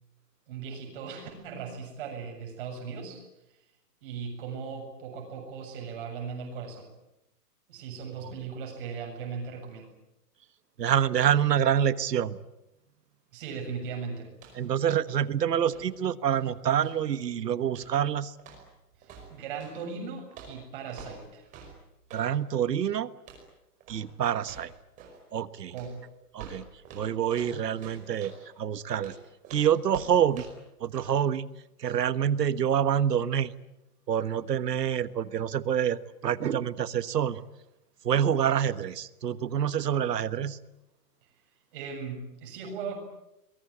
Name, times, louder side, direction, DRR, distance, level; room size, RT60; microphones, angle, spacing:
voice 1, 0.5-3.2 4.0-6.9 7.7-9.9 13.3-14.3 19.0-21.4 25.7-26.0 41.7-43.0, right 5 dB, 35° right, 3 dB, 7.4 m, -38 dB
voice 2, 10.8-12.4 14.5-18.3 22.1-23.1 23.9-24.7 25.3-25.7 26.3-26.7 26.9-29.1 29.5-30.5 30.8-31.5 31.8-33.5 34.1-37.4 38.0-40.6, right 9 dB, 90° right, 15 dB, 1.5 m, -27 dB
sound 1, 14.3-14.8 15.0-17.1 17.7-18.0 18.4-19.8 20.3-22.3 23.2-23.5 23.8-24.1 24.4-25.2 25.7-28.4 29.0-30.7 31.0-31.1, right 5 dB, 15° right, 5.2 m, -48 dB
27.5 x 22.0 x 8.7 m, 0.90 s
hypercardioid pair, 175°, 47 cm